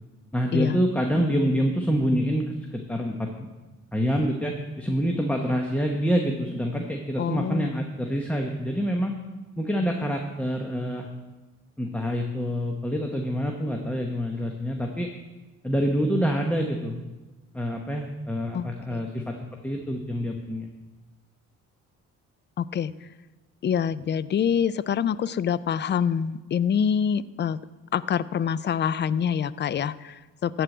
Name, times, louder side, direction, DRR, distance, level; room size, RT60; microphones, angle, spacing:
voice 1, 0.3-3.3 3.9-9.2 9.6-11.1 11.8-15.1 15.6-17.0 17.5-19.3 19.6-20.7, equal, 5° left, 1 dB, 1.2 m, -26 dB
voice 2, 7.2-7.7 18.5-19.0 22.6-22.9 23.6-27.6 27.9-30.6, left 8 dB, 35° left, 18 dB, 0.4 m, -26 dB
14.0 x 4.8 x 8.0 m, 1.2 s
cardioid pair, 90°, 30 cm